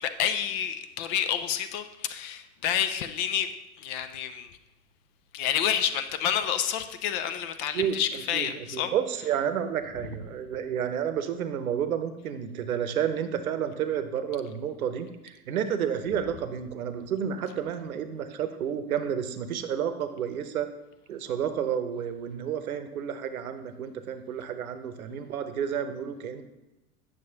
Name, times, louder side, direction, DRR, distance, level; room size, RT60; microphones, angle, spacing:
voice 1, 0.0-3.5 3.8-4.5 5.3-8.9, left 9 dB, 35° left, 10 dB, 0.4 m, -29 dB
voice 2, 8.3-20.7 21.1-26.4, right 8 dB, 65° right, 9 dB, 0.9 m, -30 dB
9.0 x 6.4 x 2.9 m, 0.97 s
figure-of-eight pair, 85°, 45 cm